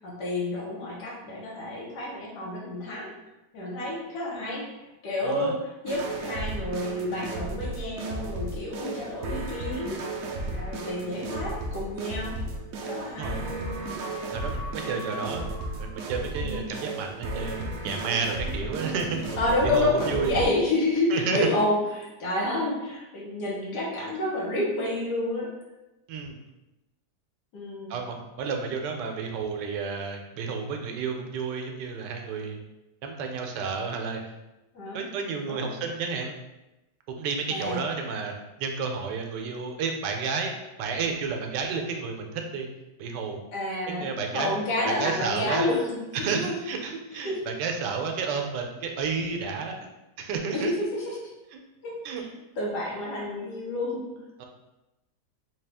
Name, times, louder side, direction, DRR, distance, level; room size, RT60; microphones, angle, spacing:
voice 1, 0.0-3.1 3.5-10.0 10.4-12.4 12.8-13.4 14.8-15.1 16.4-16.7 19.4-25.5 27.5-27.9 34.7-35.0 35.4-35.7 37.5-37.8 43.5-46.3 47.2-47.4 50.5-51.2 51.8-52.3 52.6-54.0, left 1 dB, 70° left, -4 dB, 1.5 m, -29 dB
voice 2, 5.2-5.5 13.2-13.4 14.3-15.5 15.8-19.2 19.7-20.3 21.1-21.5 26.1-26.4 27.9-32.6 33.0-34.2 34.9-36.4 37.1-40.5 40.8-42.7 43.0-43.4 43.9-44.6 44.8-45.7 46.1-49.8 50.2-50.7 51.5-51.6 52.0-52.2 54.4-54.5, right 5 dB, 85° right, 3 dB, 1.2 m, -31 dB
sound 1, 5.9-20.5, right 2 dB, 70° right, 0.9 m, -34 dB
3.9 x 2.4 x 3.4 m, 1.0 s
omnidirectional pair, 1.8 m